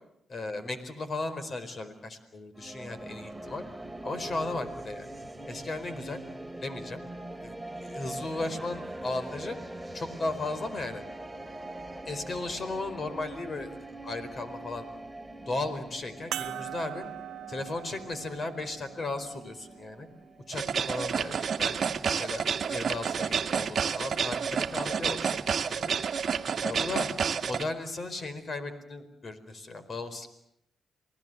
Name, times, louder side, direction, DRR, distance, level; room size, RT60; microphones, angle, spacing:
voice 1, 0.3-3.6 4.0-5.1 5.5-6.2 6.6-7.0 7.3-7.5 7.8-9.6 9.9-11.0 12.1-14.9 15.5-17.0 17.5-20.1 20.5-25.4 25.7-25.9 26.6-27.1 27.4-30.3, left 2 dB, 45° left, 10 dB, 4.6 m, -36 dB
sound 1, 2.5-20.7, right 1 dB, 5° right, 2.5 m, -43 dB
sound 2, 16.3-21.1 21.9-22.0 24.1-24.3, right 11 dB, 80° right, 0.9 m, -42 dB
sound 3, 20.5-27.6, right 6 dB, 60° right, 1.3 m, -29 dB
28.5 x 19.5 x 8.0 m, 0.77 s
cardioid pair, 65°, 0 cm